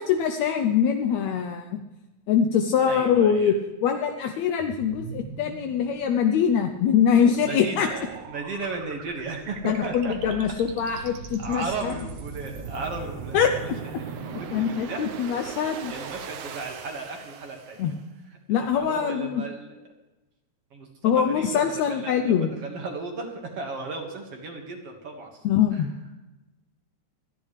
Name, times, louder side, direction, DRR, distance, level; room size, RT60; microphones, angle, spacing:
voice 1, 0.0-1.8 2.3-3.6 3.8-7.9 9.6-11.9 13.3-13.8 14.5-15.9 17.8-17.9 18.5-19.4 21.0-22.5 25.4-25.9, left 8 dB, 75° left, 6 dB, 1.9 m, -23 dB
voice 2, 2.9-3.5 7.2-10.3 10.9-11.0 11.4-13.7 14.0-15.1 15.6-17.9 18.5-19.7 20.7-25.4 25.7-25.9, right 3 dB, 55° right, 2 dB, 2.6 m, -36 dB
sound 1, 4.6-18.0, right 5 dB, 75° right, 2.5 m, -40 dB
27.5 x 10.5 x 3.3 m, 1.1 s
omnidirectional pair, 3.4 m